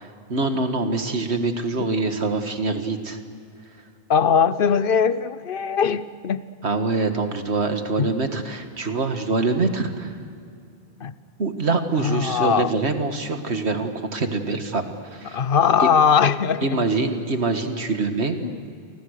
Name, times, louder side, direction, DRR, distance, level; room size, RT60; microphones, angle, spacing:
voice 1, 0.0-3.2 6.6-10.1 11.4-14.8 15.1-15.4 16.6-18.4, right 3 dB, 85° right, 6 dB, 2.1 m, -24 dB
voice 2, 4.1-6.4 8.0-8.1 11.0-11.1 12.0-12.7 15.2-16.9 18.4-18.6, left 7 dB, 60° left, 14 dB, 1.0 m, -20 dB
29.5 x 24.5 x 6.6 m, 2.4 s
omnidirectional pair, 1.1 m